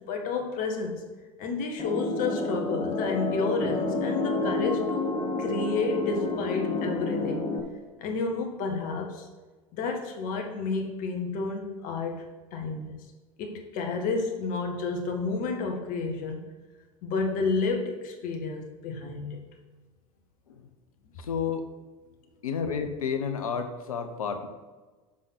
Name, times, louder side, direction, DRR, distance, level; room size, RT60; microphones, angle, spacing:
voice 1, 0.1-1.0 1.4-5.1 5.4-7.5 8.0-9.3 9.7-12.3 12.5-13.1 13.4-16.5 17.0-19.4, left 4 dB, 50° left, 3 dB, 1.7 m, -30 dB
sound 1, 1.8-7.6, left 3 dB, 30° left, 1.4 m, -29 dB
voice 2, 21.3-21.6 22.4-24.5, left 6 dB, 80° left, 8 dB, 1.0 m, -30 dB
7.4 x 5.7 x 6.0 m, 1.3 s
hypercardioid pair, 80°, 18 cm